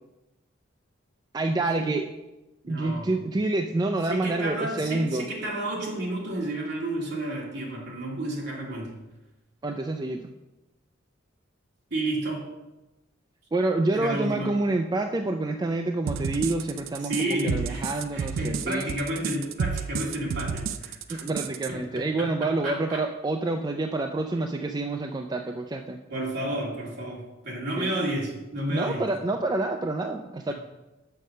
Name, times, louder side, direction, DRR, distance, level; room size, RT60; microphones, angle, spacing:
voice 1, 1.3-2.1 2.7-5.3 9.6-10.3 13.5-18.9 21.1-26.0 27.8-27.9 28.7-30.5, right 2 dB, 20° right, 5 dB, 0.3 m, -28 dB
voice 2, 2.6-3.1 4.1-8.9 11.9-12.4 13.9-14.5 17.0-17.9 18.1-21.2 21.7-23.0 26.1-29.0 30.5-30.6, right 1 dB, 60° right, -3 dB, 2.3 m, -31 dB
sound 1, 16.1-21.7, right 6 dB, 85° right, 0.4 m, -31 dB
6.6 x 5.5 x 6.4 m, 1.0 s
head